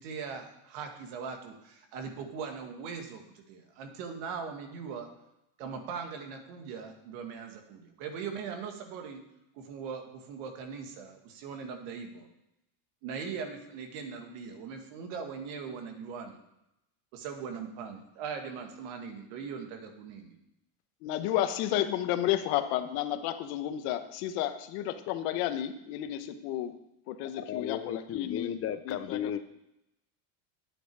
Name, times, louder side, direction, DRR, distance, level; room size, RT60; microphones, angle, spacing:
voice 1, 0.0-5.1 5.6-9.2 9.6-12.3 13.0-16.4 17.1-20.4, right 6 dB, 80° right, 5 dB, 2.0 m, -40 dB
voice 2, 21.0-26.8 27.1-28.6 28.8-29.3, left 12 dB, 80° left, 9 dB, 1.1 m, -32 dB
voice 3, 27.4-29.4, left 10 dB, 30° left, 12 dB, 0.5 m, -34 dB
10.0 x 8.8 x 4.8 m, 0.85 s
cardioid pair, 140°, 46 cm